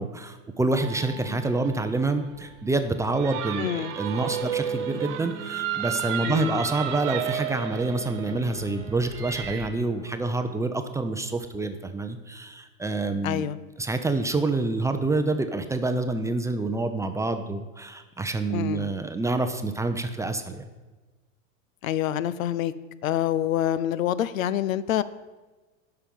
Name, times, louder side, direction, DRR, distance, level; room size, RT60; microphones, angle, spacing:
voice 1, 0.0-13.5 13.8-20.7, right 2 dB, 10° right, 7 dB, 0.5 m, -27 dB
sound 1, 0.8-9.7, right 9 dB, 65° right, 1.3 m, -33 dB
voice 2, 3.6-4.0 6.3-6.6 13.2-13.6 18.5-18.9 21.8-22.7 23.0-25.0, left 11 dB, 85° left, 16 dB, 0.6 m, -26 dB
sound 2, 4.3-11.6, right 3 dB, 10° left, 0.9 m, -46 dB
11.5 x 5.8 x 5.3 m, 1.2 s
hypercardioid pair, 110°, 39 cm